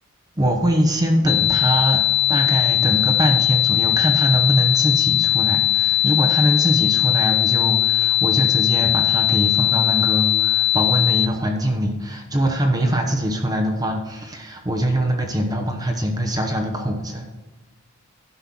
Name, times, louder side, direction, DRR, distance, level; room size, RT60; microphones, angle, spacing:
voice 1, 0.4-2.0 2.3-17.3, right 1 dB, 15° right, 3 dB, 0.9 m, -22 dB
sound 1, 1.3-11.3, left 14 dB, 40° left, 0.4 m, -19 dB
12.0 x 5.6 x 6.0 m, 1.2 s
head